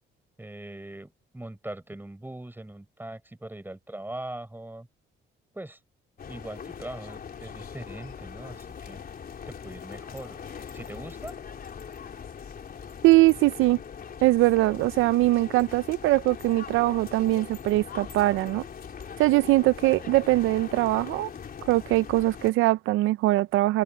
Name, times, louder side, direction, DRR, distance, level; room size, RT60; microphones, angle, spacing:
voice 1, 0.4-4.9 5.5-5.8 6.3-9.0 9.5-10.4 10.7-11.4, right 1 dB, 10° right, 5.2 m, -41 dB
sound 1, 6.2-22.5, left 7 dB, 50° left, 3.9 m, -41 dB
voice 2, 13.0-13.8 14.2-18.6 19.2-21.3 21.7-23.8, right 18 dB, 90° right, 0.4 m, -22 dB
open air
cardioid pair, 90°, 20 cm